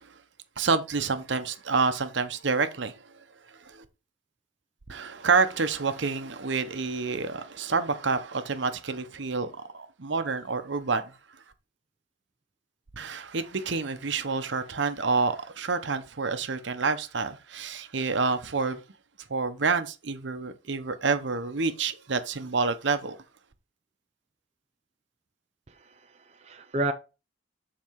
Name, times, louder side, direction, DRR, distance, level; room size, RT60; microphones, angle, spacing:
voice 1, 0.6-3.1 3.6-3.8 4.9-11.1 13.0-18.8 19.3-23.2, right 4 dB, 75° right, 0.9 m, -28 dB
voice 2, 25.7-26.9, right 1 dB, 35° right, 0.5 m, -32 dB
7.6 x 4.2 x 4.7 m
head